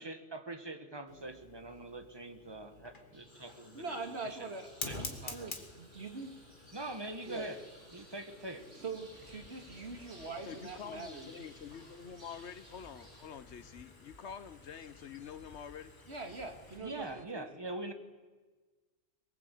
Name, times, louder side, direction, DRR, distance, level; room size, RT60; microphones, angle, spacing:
voice 1, 0.0-4.0 4.2-4.5 4.9-5.5 6.7-7.6 7.9-8.7 16.8-17.9, right 2 dB, 20° right, 8 dB, 1.5 m, -43 dB
Fire, 1.1-16.8, left 2 dB, 45° left, 2.1 m, -51 dB
sound 1, 3.1-13.3, right 1 dB, 85° right, 4.2 m, -58 dB
voice 2, 3.7-6.3 7.3-7.5 8.8-11.3 16.1-17.5, right 3 dB, 60° right, 5 dB, 2.4 m, -43 dB
sound 2, 9.1-17.3, left 3 dB, 20° left, 1.0 m, -60 dB
voice 3, 10.4-15.9, left 7 dB, 70° left, 14 dB, 1.2 m, -47 dB
23.0 x 20.5 x 8.4 m, 1.4 s
omnidirectional pair, 1.2 m